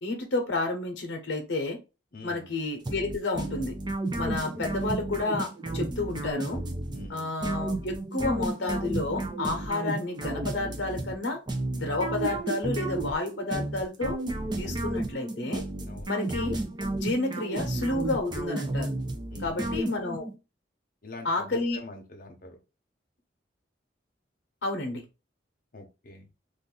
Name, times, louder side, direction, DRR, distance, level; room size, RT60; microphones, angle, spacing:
voice 1, 0.0-1.8 2.2-3.7 4.1-6.6 7.1-11.4 11.7-14.2 14.6-15.6 16.1-16.5 16.9-18.9 19.4-20.3 21.2-21.8 24.6-25.0, left 2 dB, 85° left, 4 dB, 0.8 m, -30 dB
voice 2, 2.1-2.5 6.9-7.3 15.9-16.1 19.3-19.8 21.0-22.6 25.7-26.3, left 2 dB, 50° left, 3 dB, 0.8 m, -45 dB
sound 1, 2.9-20.3, right 2 dB, 25° right, 0.5 m, -32 dB
2.5 x 2.5 x 3.7 m, 0.29 s
head